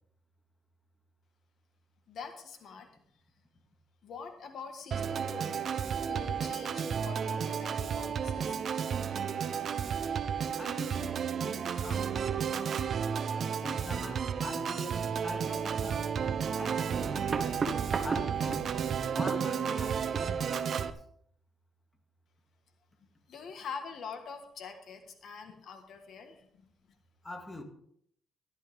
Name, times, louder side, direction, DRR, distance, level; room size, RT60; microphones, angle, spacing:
voice 1, 2.1-2.9 4.0-5.8 6.1-8.7 23.3-26.7, left 5 dB, 65° left, 1.6 m, -45 dB
Organ, 4.9-20.9, right 7 dB, 55° right, 0.9 m, -32 dB
voice 2, 10.6-12.2 13.6-16.1 16.5-17.7 18.0-18.8 19.1-20.8 27.2-27.6, left 2 dB, 20° left, 2.2 m, -44 dB
sound 1, 15.8-15.9 16.6-18.7 19.2-19.6 20.1-20.3, right 4 dB, 40° right, 1.2 m, -34 dB
14.5 x 12.0 x 3.6 m
cardioid pair, 90°, 0 cm